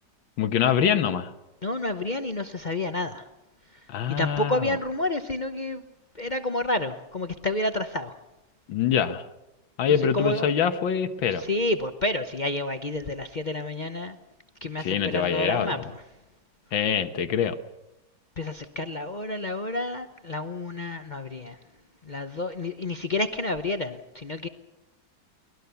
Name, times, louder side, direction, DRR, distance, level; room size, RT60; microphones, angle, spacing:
voice 1, 0.4-1.3 3.9-4.8 8.7-9.3 9.8-11.4 14.8-15.8 16.7-17.6, left 8 dB, 85° left, 9 dB, 1.9 m, -24 dB
voice 2, 1.6-3.3 3.7-5.8 6.1-8.2 9.9-10.5 11.3-14.2 14.6-16.0 18.4-21.6 22.0-24.5, left 2 dB, 45° left, 8 dB, 0.6 m, -30 dB
23.0 x 19.5 x 6.9 m, 0.96 s
omnidirectional pair, 2.1 m